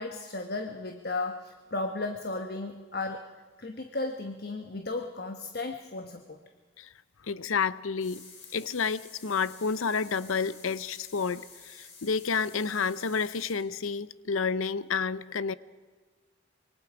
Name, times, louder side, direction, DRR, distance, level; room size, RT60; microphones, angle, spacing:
voice 1, 0.0-6.4, left 2 dB, 50° left, 6 dB, 1.1 m, -35 dB
voice 2, 7.2-8.3 8.5-15.5, left 5 dB, 85° left, 17 dB, 0.6 m, -30 dB
sound 1, 8.0-13.6, left 4 dB, 70° left, 5.8 m, -51 dB
26.0 x 23.5 x 4.9 m, 1.4 s
head